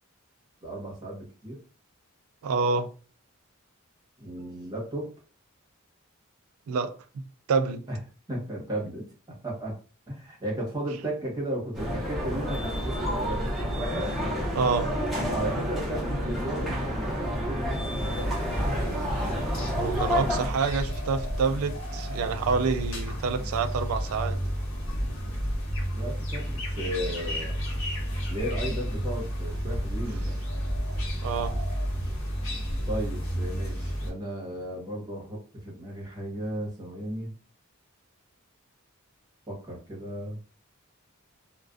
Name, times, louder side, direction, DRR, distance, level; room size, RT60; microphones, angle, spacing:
voice 1, 0.6-1.6 4.2-5.1 7.9-8.0 8.3-9.8 10.1-13.7 15.2-18.3 25.9-27.6 28.3-30.5 32.9-37.3 39.5-40.4, right 1 dB, 20° right, 0.9 m, -35 dB
voice 2, 2.4-2.9 6.7-7.8 14.5-14.9 19.8-24.4 31.2-31.5, right 5 dB, 75° right, 0.3 m, -27 dB
sound 1, 11.7-20.5, equal, ahead, 0.6 m, -29 dB
sound 2, 17.8-34.1, equal, 65° left, 0.8 m, -31 dB
2.4 x 2.2 x 2.3 m
head